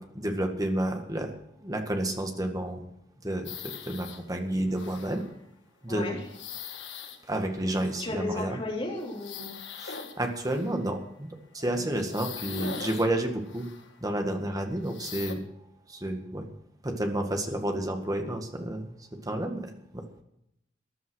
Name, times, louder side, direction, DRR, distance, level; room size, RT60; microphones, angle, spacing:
voice 1, 0.0-1.4 1.6-2.9 3.2-5.3 5.8-6.2 7.3-8.6 9.8-11.3 11.5-13.7 14.0-15.4 15.9-16.5 16.8-18.9 19.2-20.0, right 1 dB, 20° right, 4 dB, 1.8 m, -30 dB
sound 1, 3.4-4.2 4.7-5.4 6.1-8.3 8.9-10.9 11.6-14.0 14.8-15.3, left 7 dB, 75° left, 1.7 m, -42 dB
voice 2, 5.9-6.2 8.0-9.6 11.8-11.9, left 2 dB, 30° left, -1 dB, 3.5 m, -34 dB
14.0 x 11.0 x 6.4 m, 0.78 s
head